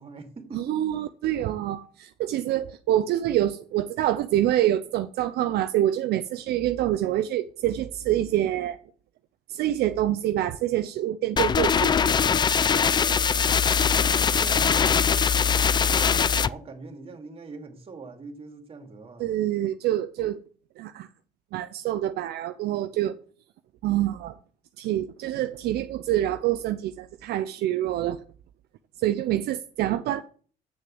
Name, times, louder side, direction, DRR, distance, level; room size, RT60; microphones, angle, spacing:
voice 1, 0.0-0.8 13.9-19.3, right 3 dB, 35° right, 2.4 m, -43 dB
voice 2, 0.5-8.8 9.5-11.9 19.2-20.4 20.8-21.1 21.5-23.2 23.8-24.4 24.8-28.2 29.0-30.2, right 13 dB, 70° right, 0.6 m, -26 dB
sound 1, 11.4-16.5, left 7 dB, 25° left, 0.4 m, -21 dB
8.0 x 6.6 x 7.7 m
cardioid pair, 110°, 17 cm